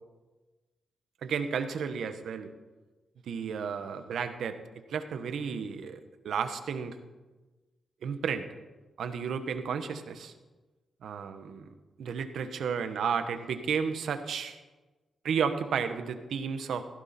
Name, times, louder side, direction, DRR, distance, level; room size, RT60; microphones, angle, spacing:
voice 1, 1.2-2.5 3.3-4.6 4.9-6.0 6.2-7.0 8.0-8.4 9.0-10.3 11.0-11.7 12.0-14.6 15.2-16.8, right 6 dB, 80° right, 9 dB, 1.2 m, -32 dB
17.0 x 15.5 x 4.4 m, 1.2 s
wide cardioid pair, 125°, 0 cm